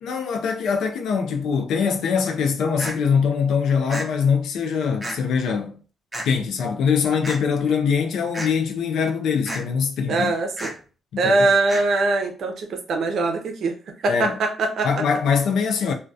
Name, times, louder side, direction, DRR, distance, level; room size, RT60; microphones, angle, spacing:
voice 1, 0.0-5.8 6.2-10.3 11.2-11.5 14.1-14.4 14.8-15.9, left 6 dB, 85° left, 0.4 m, -23 dB
sound 1, 2.8-3.0 3.9-4.1 5.0-5.2 6.1-6.3 7.2-7.4 8.3-8.5 9.5-9.6 10.6-10.7 11.7-11.8, right 1 dB, 10° right, 0.6 m, -30 dB
voice 2, 10.1-10.7 11.2-13.8 14.0-15.1, right 3 dB, 70° right, 0.5 m, -22 dB
2.3 x 2.2 x 2.5 m
cardioid pair, 105°, 0 cm